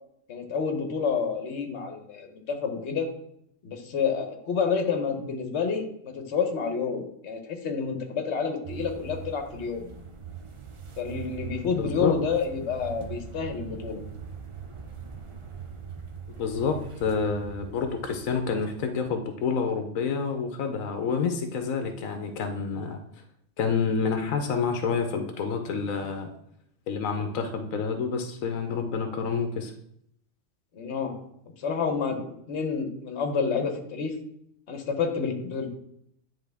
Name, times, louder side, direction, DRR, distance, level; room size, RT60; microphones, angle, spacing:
voice 1, 0.3-3.1 3.6-9.8 11.0-14.0 30.7-31.1 31.6-34.1 34.7-35.8, left 5 dB, 60° left, 5 dB, 1.2 m, -29 dB
sound 1, 8.6-19.2, right 6 dB, 40° right, 0.4 m, -41 dB
voice 2, 11.6-12.2 16.3-23.0 23.6-26.3 26.9-29.7, left 5 dB, 85° left, 6 dB, 1.1 m, -28 dB
9.6 x 3.8 x 3.4 m, 0.74 s
omnidirectional pair, 1.4 m